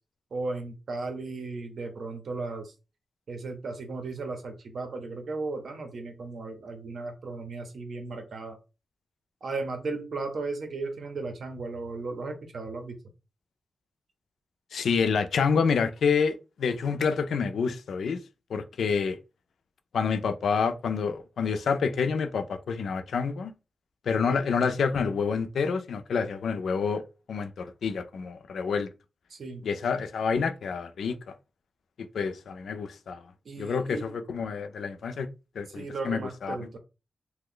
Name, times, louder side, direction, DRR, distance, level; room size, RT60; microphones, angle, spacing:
voice 1, 0.3-2.7 3.3-8.6 9.4-13.0 24.3-24.5 29.3-29.6 33.4-34.1 35.7-36.8, right 3 dB, 65° right, 0.8 m, -35 dB
voice 2, 14.7-18.2 18.5-19.2 19.9-23.5 24.1-27.0 27.3-28.9 29.6-31.2 32.1-33.2 33.6-35.3 35.6-36.8, left 5 dB, 90° left, 0.3 m, -28 dB
2.9 x 2.1 x 3.7 m
wide cardioid pair, 120°, 0 cm